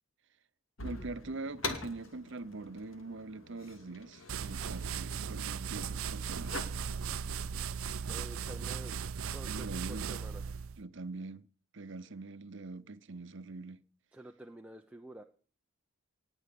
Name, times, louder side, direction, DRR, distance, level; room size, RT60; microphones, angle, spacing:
sound 1, 0.8-7.6, left 3 dB, 75° left, 2.4 m, -45 dB
voice 1, 0.8-6.6 9.4-10.1 10.8-11.5 11.7-13.8, right 3 dB, 60° right, 0.9 m, -43 dB
sound 2, 4.3-10.8, right 6 dB, 85° right, 0.6 m, -37 dB
voice 2, 8.1-9.0 9.2-10.5 14.1-15.2, right 1 dB, 5° right, 0.7 m, -49 dB
18.5 x 6.4 x 8.5 m
head